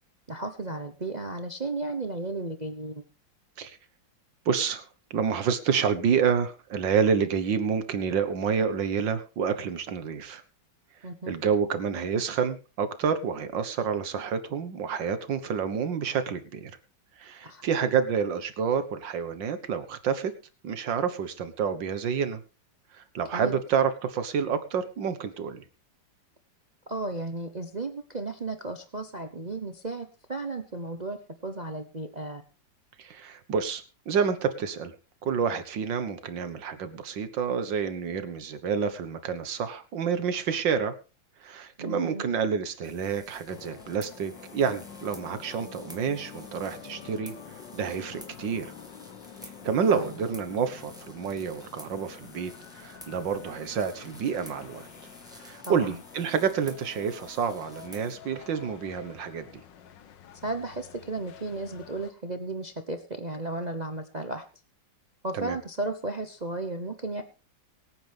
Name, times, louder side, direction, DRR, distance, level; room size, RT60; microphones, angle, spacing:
voice 1, 0.3-3.0 11.0-11.3 17.4-17.6 23.3-23.6 26.9-31.2 31.4-32.4 41.8-42.3 49.9-50.1 55.7-56.0 60.4-64.4 65.2-67.2, right 2 dB, 30° right, 7 dB, 0.9 m, -34 dB
voice 2, 4.5-4.9 5.1-10.4 11.3-16.7 17.2-20.3 20.6-22.4 22.9-25.6 33.0-34.9 35.2-40.9 41.4-47.3 47.7-48.7 49.6-54.9 55.4-59.6 65.3-65.6, right 6 dB, 75° right, 12 dB, 2.0 m, -28 dB
sound 1, 42.8-58.2, right 1 dB, ahead, 2.0 m, -51 dB
sound 2, 43.5-62.1, left 8 dB, 70° left, 1.7 m, -48 dB
23.5 x 9.3 x 3.5 m, 0.33 s
omnidirectional pair, 2.1 m